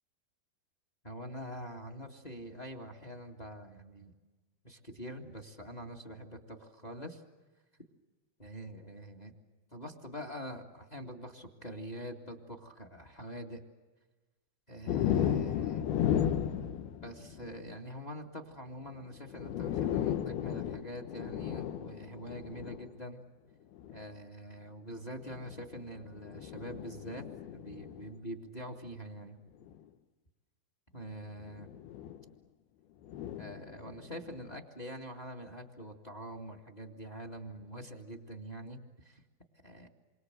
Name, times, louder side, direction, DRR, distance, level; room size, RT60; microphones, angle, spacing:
voice 1, 1.0-4.1 4.6-7.2 8.4-9.3 9.7-13.6 14.7-15.8 17.0-23.2 23.9-29.4 30.9-31.7 33.3-39.2 39.6-39.9, equal, 20° left, 4 dB, 1.1 m, -45 dB
sound 1, 14.9-17.6 18.9-19.0 19.3-22.9 23.8-24.0 25.2-28.1 29.6-29.8 31.5-32.2 33.0-34.5, left 10 dB, 85° left, 3.0 m, -34 dB
28.5 x 25.0 x 7.9 m, 1.2 s
omnidirectional pair, 4.4 m